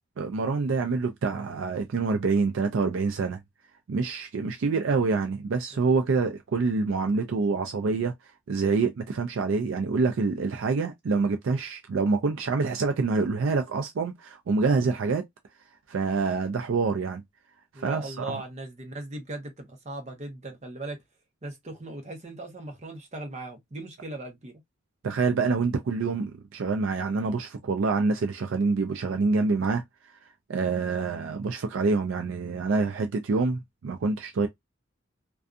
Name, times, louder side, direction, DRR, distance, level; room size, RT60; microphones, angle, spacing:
voice 1, 0.2-3.4 3.9-8.1 8.5-15.2 15.9-17.2 17.8-18.4 25.0-29.8 30.5-34.5, right 4 dB, 65° right, 0.4 m, -26 dB
voice 2, 17.7-21.0 21.4-24.5, right 2 dB, 35° right, 0.8 m, -38 dB
2.6 x 2.3 x 2.4 m
head